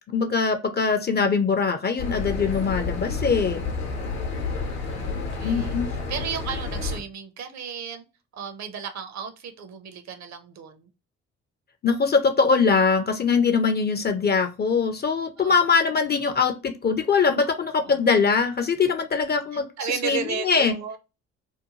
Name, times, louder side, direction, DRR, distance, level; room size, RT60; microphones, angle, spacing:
voice 1, 0.1-3.6 5.4-6.0 11.8-19.7 20.0-20.7, left 5 dB, 30° left, 0.4 m, -22 dB
sound 1, 2.0-7.0, left 4 dB, 75° left, 0.8 m, -30 dB
voice 2, 3.9-4.7 5.0-5.7 6.1-8.0 8.3-10.9 15.4-15.7 17.4-17.9 18.2-18.3 19.5-21.0, right 6 dB, 50° right, 0.6 m, -35 dB
2.7 x 2.1 x 2.8 m
hypercardioid pair, 45°, 36 cm